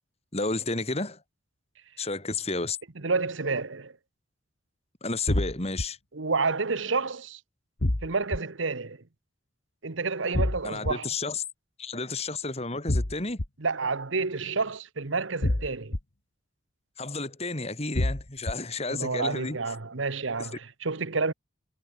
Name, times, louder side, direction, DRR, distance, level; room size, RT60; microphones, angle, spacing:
voice 1, 0.3-1.2 2.0-2.8 5.0-6.0 10.6-11.4 11.8-13.4 17.0-19.6, left 3 dB, 30° left, 3.2 m, -31 dB
voice 2, 3.0-3.9 6.1-7.4 8.0-9.0 9.8-11.1 13.6-15.9 18.9-21.3, right 4 dB, 80° right, 1.3 m, -29 dB
sound 1, 5.3-5.8 7.8-8.4 10.3-10.9 12.9-13.5 15.4-16.0 17.9-18.5, left 1 dB, 60° left, 1.8 m, -26 dB
head